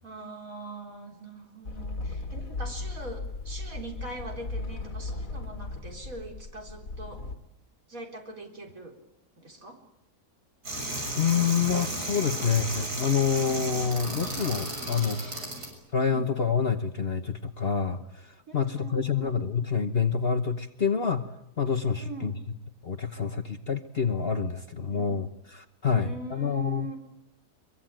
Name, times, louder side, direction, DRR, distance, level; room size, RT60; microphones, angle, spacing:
voice 1, 0.0-7.2 7.9-9.0 9.4-9.8 14.8-15.0 15.5-15.6 16.1-16.3 18.5-19.4 21.9-22.4 24.9-25.2 25.9-27.0, right 3 dB, 55° right, 2 dB, 4.4 m, -42 dB
sound 1, 1.7-7.4, left 3 dB, 55° left, 2.1 m, -36 dB
sound 2, 10.6-15.7, right 1 dB, 75° right, 7.1 m, -34 dB
voice 2, 11.1-15.2 15.9-21.3 21.6-22.3 22.8-26.9, left 6 dB, 40° left, 8 dB, 1.2 m, -27 dB
24.0 x 23.0 x 9.0 m, 0.89 s
omnidirectional pair, 1.7 m